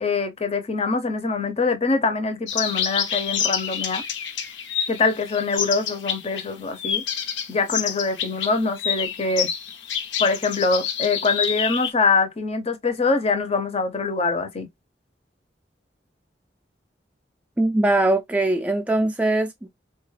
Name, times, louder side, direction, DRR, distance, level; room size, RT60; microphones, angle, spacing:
voice 1, 0.0-4.0 4.9-7.0 7.5-9.5 10.2-14.7, left 4 dB, 35° left, 0.6 m, -24 dB
sound 1, 2.5-6.5 6.8-11.9, left 8 dB, 90° left, 0.7 m, -28 dB
voice 2, 17.6-19.7, right 2 dB, 10° right, 0.3 m, -21 dB
3.7 x 2.2 x 3.2 m
head